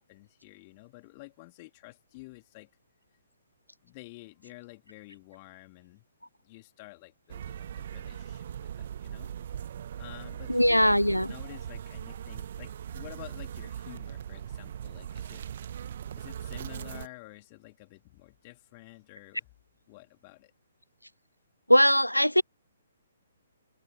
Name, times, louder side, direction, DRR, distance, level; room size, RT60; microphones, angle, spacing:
voice 1, 0.0-2.7 3.8-6.0 6.4-9.3 10.0-11.0 11.2-15.4 16.2-19.5 19.9-20.5, left 24 dB, 30° left, 3.6 m, -50 dB
sound 1, 7.3-17.1, right 9 dB, 45° right, 1.4 m, -40 dB
voice 2, 10.5-11.3 21.7-22.4, equal, 90° left, 0.5 m, -21 dB
figure-of-eight pair, 130°, 0 cm